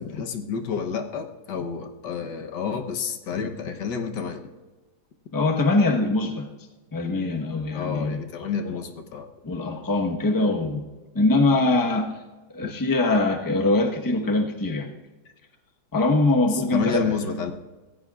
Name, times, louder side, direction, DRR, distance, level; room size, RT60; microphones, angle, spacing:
voice 1, 0.0-4.4 7.7-9.3 12.6-12.7 16.5-17.5, left 6 dB, 75° left, 5 dB, 1.7 m, -30 dB
voice 2, 5.3-6.5 6.9-8.2 9.4-10.8 11.1-12.1 12.5-14.9 15.9-17.2, left 2 dB, 15° left, 2 dB, 1.0 m, -22 dB
26.5 x 15.0 x 2.5 m, 1.2 s
omnidirectional pair, 1.9 m